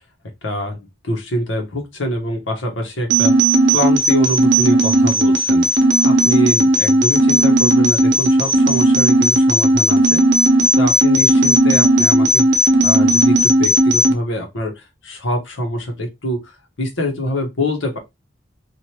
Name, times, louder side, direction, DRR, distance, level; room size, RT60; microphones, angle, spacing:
voice 1, 0.4-0.8 1.0-3.3 3.7-5.7 6.0-10.2 10.8-16.4 16.8-18.0, equal, 85° left, 1.1 m, -24 dB
sound 1, 3.1-14.1, right 1 dB, 65° right, 0.7 m, -15 dB
3.1 x 2.5 x 2.8 m
head